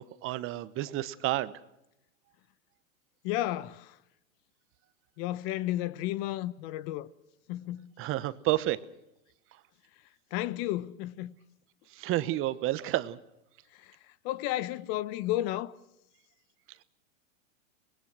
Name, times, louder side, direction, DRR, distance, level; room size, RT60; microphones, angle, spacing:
voice 1, 0.0-1.5 8.0-8.8 12.0-13.2, right 15 dB, 30° right, 1.0 m, -30 dB
voice 2, 3.2-4.0 5.2-7.1 7.5-7.9 10.3-11.3 13.7-14.0 14.2-15.8, left 14 dB, 45° left, 1.0 m, -32 dB
25.0 x 21.0 x 6.2 m
hypercardioid pair, 130°, 41 cm